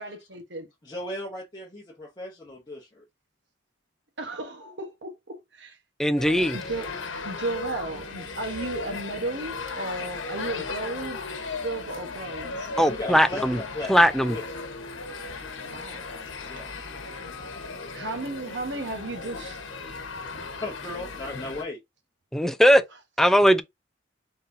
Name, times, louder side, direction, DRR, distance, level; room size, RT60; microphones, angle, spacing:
voice 1, 0.0-0.7 4.2-5.8 6.5-6.9 7.2-11.2 11.6-12.7 15.6-16.0 17.9-19.6, right 2 dB, 60° right, 1.1 m, -34 dB
voice 2, 0.8-3.0 12.8-14.0 14.3-14.4 16.5-16.7 20.6-21.8, left 2 dB, 20° left, 0.9 m, -36 dB
voice 3, 6.0-6.6 12.8-13.6 13.9-14.4 22.3-22.8 23.2-23.6, equal, ahead, 0.3 m, -19 dB
sound 1, 6.2-21.6, left 4 dB, 80° left, 1.1 m, -36 dB
4.0 x 4.0 x 2.6 m
head